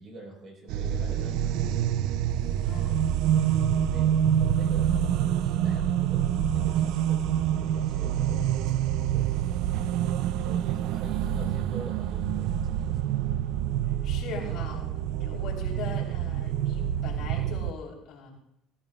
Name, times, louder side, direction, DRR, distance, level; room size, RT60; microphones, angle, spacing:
voice 1, 0.0-1.8 2.6-3.0 3.7-8.5 8.9-9.6 10.4-13.2, right 2 dB, 40° right, 0 dB, 4.1 m, -46 dB
sound 1, 0.7-17.7, right 10 dB, 70° right, 0.4 m, -27 dB
voice 2, 2.7-3.0 13.9-14.9 15.2-18.3, left 5 dB, 60° left, -1 dB, 3.5 m, -40 dB
15.5 x 14.0 x 2.4 m, 0.74 s
cardioid pair, 135°, 0 cm